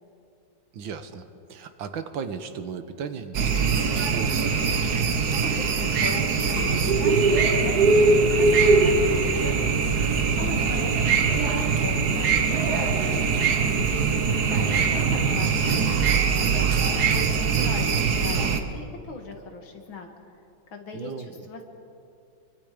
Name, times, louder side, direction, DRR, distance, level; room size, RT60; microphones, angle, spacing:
voice 1, 0.7-4.8 13.8-14.1 20.9-21.4, right 6 dB, 80° right, 9 dB, 1.9 m, -36 dB
sound 1, 3.3-18.6, right 4 dB, 55° right, 1.6 m, -22 dB
voice 2, 5.3-12.3 12.6-13.1 13.7-20.1 20.7-21.6, left 3 dB, 85° left, 3 dB, 2.9 m, -39 dB
27.0 x 24.0 x 5.2 m, 2.7 s
omnidirectional pair, 2.1 m